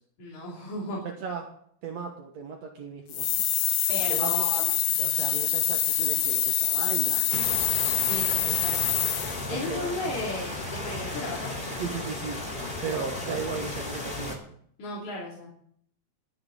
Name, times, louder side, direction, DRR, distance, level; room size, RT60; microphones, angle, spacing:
voice 1, 0.2-1.0 3.9-4.8 8.0-8.8 9.5-10.6 10.8-11.5 14.8-15.5, left 2 dB, 85° left, -4 dB, 4.1 m, -35 dB
voice 2, 1.0-1.5 1.8-3.3 4.1-4.5 5.0-7.5 9.5-9.9 11.8-12.4 12.8-14.4, right 6 dB, 65° right, 1 dB, 2.4 m, -36 dB
sound 1, 3.1-9.5, left 11 dB, 70° left, 1.9 m, -25 dB
sound 2, 7.3-14.4, left 2 dB, 20° left, 2.4 m, -35 dB
22.0 x 7.8 x 3.9 m, 0.63 s
omnidirectional pair, 3.3 m